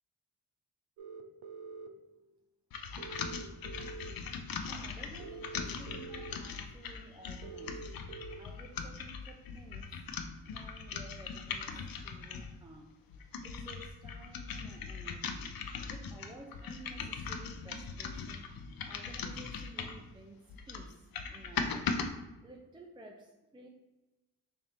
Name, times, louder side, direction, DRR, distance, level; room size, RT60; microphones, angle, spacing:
sound 1, 1.0-1.9 3.0-4.1 5.2-6.3 7.4-8.4, right 4 dB, 85° right, 0.5 m, -45 dB
sound 2, 2.7-12.6 13.1-20.1 20.5-22.1, left 5 dB, 55° left, 0.5 m, -40 dB
voice 1, 4.7-7.8 8.4-10.0 10.4-11.8 12.0-15.4 15.9-21.9 22.4-23.7, right 2 dB, 10° right, 1 dB, 0.4 m, -53 dB
3.3 x 2.7 x 3.7 m, 1.1 s
supercardioid pair, 45°, 43 cm